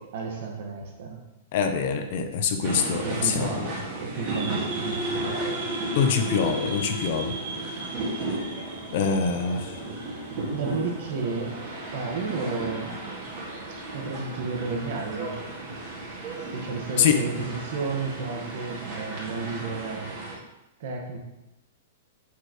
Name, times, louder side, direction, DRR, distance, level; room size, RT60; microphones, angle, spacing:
voice 1, 0.1-1.2 3.0-5.6 10.5-11.6 11.9-13.0 13.9-15.5 16.5-20.1 20.8-21.2, right 4 dB, 50° right, 1 dB, 1.6 m, -32 dB
voice 2, 1.5-3.6 5.9-7.4 8.9-9.8 17.0-17.2, left 6 dB, 45° left, 6 dB, 0.7 m, -25 dB
sound 1, 2.6-20.4, right 2 dB, 30° right, 2.0 m, -34 dB
7.9 x 6.6 x 3.1 m, 0.97 s
supercardioid pair, 175°, 0 cm